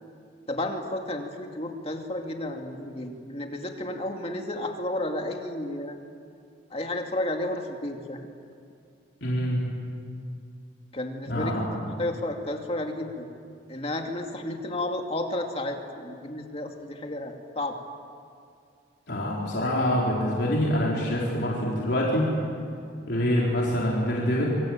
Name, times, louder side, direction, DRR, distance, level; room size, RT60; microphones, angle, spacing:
voice 1, 0.5-6.0 6.7-8.2 10.9-13.3 13.7-17.8, left 1 dB, 30° left, 3 dB, 2.4 m, -32 dB
voice 2, 9.2-9.7 11.3-11.6 19.1-22.3 23.1-24.4, equal, 55° left, -4 dB, 4.5 m, -25 dB
26.0 x 25.0 x 9.0 m, 2.4 s
head